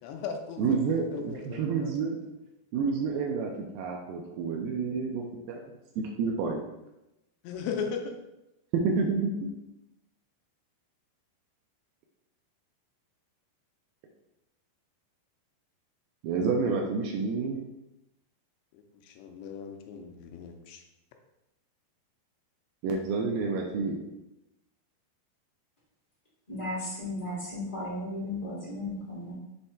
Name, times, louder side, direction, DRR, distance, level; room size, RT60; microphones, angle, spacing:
voice 1, 0.0-1.9 7.4-8.2 19.1-20.8, left 6 dB, 90° left, 2.8 m, -37 dB
voice 2, 0.6-2.2 2.7-6.6 8.7-9.5 16.2-17.6 22.8-24.0, right 4 dB, 90° right, 2.0 m, -29 dB
voice 3, 26.5-29.4, left 1 dB, 20° left, 1.1 m, -35 dB
7.0 x 3.3 x 4.2 m
omnidirectional pair, 4.9 m